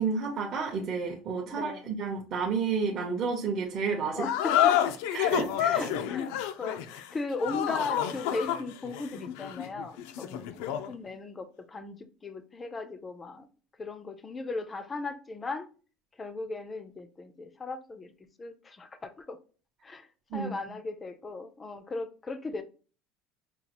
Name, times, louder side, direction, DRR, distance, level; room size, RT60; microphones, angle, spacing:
voice 1, 0.0-4.3 5.1-5.9 20.3-20.5, right 5 dB, 35° right, 0.6 m, -31 dB
voice 2, 1.5-1.9 4.1-4.9 5.7-6.3 6.6-13.5 13.8-15.7 16.2-18.1 18.4-19.4 19.8-22.6, left 3 dB, 15° left, 0.4 m, -37 dB
sound 1, 4.2-10.9, left 11 dB, 80° left, 0.4 m, -29 dB
5.2 x 2.3 x 2.8 m
cardioid pair, 170°, 0 cm